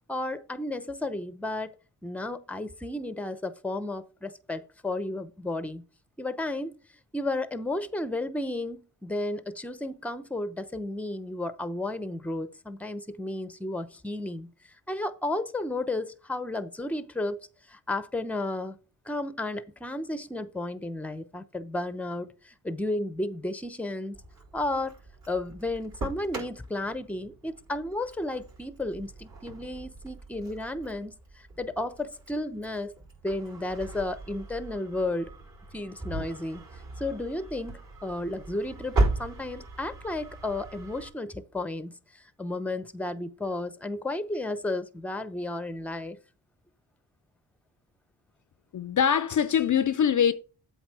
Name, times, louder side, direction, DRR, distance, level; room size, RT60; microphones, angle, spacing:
voice 1, 0.1-1.7 2.0-5.8 6.2-6.7 7.1-14.5 14.9-17.4 17.7-18.8 19.1-24.2 24.5-25.0 25.3-32.9 33.2-35.3 35.7-36.6 37.0-46.2, left 2 dB, 5° left, 0.7 m, -33 dB
Engine starting, 24.1-41.1, right 2 dB, 55° right, 4.4 m, -37 dB
voice 2, 48.7-50.3, left 8 dB, 50° left, 0.5 m, -23 dB
8.1 x 4.0 x 6.1 m
cardioid pair, 65°, 40 cm